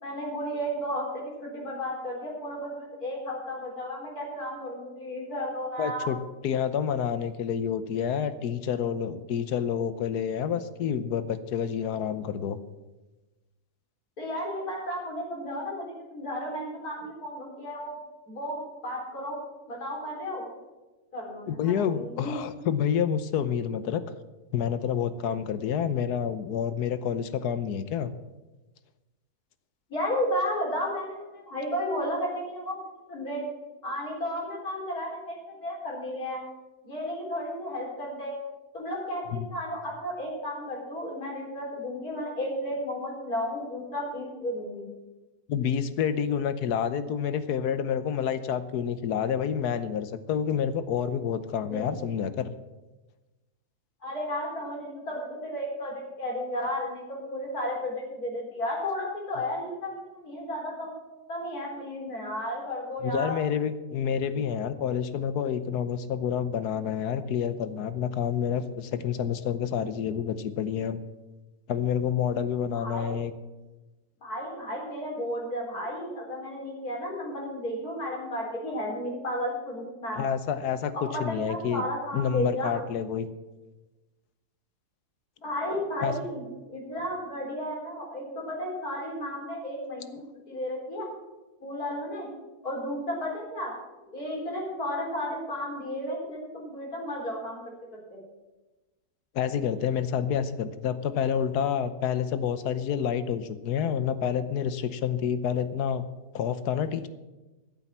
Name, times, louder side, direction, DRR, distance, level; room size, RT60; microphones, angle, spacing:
voice 1, 0.0-6.2 14.2-18.0 18.3-19.4 19.7-20.4 21.1-22.3 29.9-32.8 33.1-33.4 33.8-36.4 36.8-38.3 38.7-44.9 51.7-51.9 54.0-60.9 61.3-63.4 72.7-73.2 74.2-80.2 80.9-82.7 85.4-86.4 86.7-90.2 90.5-91.1 91.6-92.3 92.6-93.8 94.1-98.2, equal, 70° left, -2 dB, 4.4 m, -33 dB
voice 2, 5.8-6.2 6.4-12.6 21.5-24.0 24.5-28.1 39.3-39.5 45.5-52.5 63.0-71.0 71.7-73.3 80.1-81.8 82.1-83.3 86.0-86.1 99.3-106.1 106.3-107.1, left 8 dB, 85° left, 12 dB, 1.4 m, -28 dB
13.5 x 7.8 x 7.3 m, 1.1 s
omnidirectional pair, 1.7 m